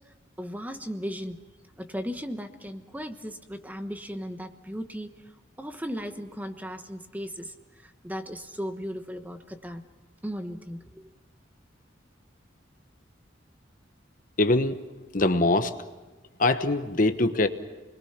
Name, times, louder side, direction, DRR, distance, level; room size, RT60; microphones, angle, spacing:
voice 1, 0.4-1.4 1.8-5.1 5.6-7.5 7.8-9.8 10.2-11.1, equal, 10° right, 7 dB, 1.2 m, -36 dB
voice 2, 14.4-14.8 15.1-15.7 16.4-17.5, left 2 dB, 45° left, 8 dB, 1.1 m, -23 dB
29.0 x 21.5 x 5.9 m, 1.2 s
head